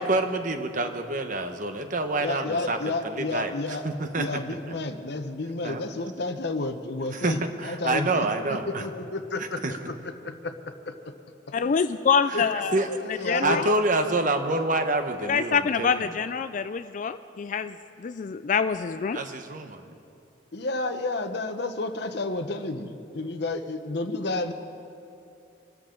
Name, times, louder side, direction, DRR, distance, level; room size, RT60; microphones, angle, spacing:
voice 1, 0.0-2.8 3.0-3.5 3.8-4.4 4.7-4.8 5.6-5.8 7.1-8.8 9.6-9.7 12.3-12.4 12.7-12.9 13.4-16.1 19.1-19.8, right 2 dB, 45° right, 7 dB, 1.0 m, -27 dB
voice 2, 2.2-3.8 4.2-10.5 10.9-11.0 12.3-12.4 12.9-13.7 20.5-24.5, left 2 dB, 60° left, 8 dB, 0.9 m, -31 dB
voice 3, 11.5-12.8 13.3-13.8 15.2-19.2, left 6 dB, 40° left, 11 dB, 0.3 m, -26 dB
26.0 x 13.0 x 3.8 m, 2.6 s
head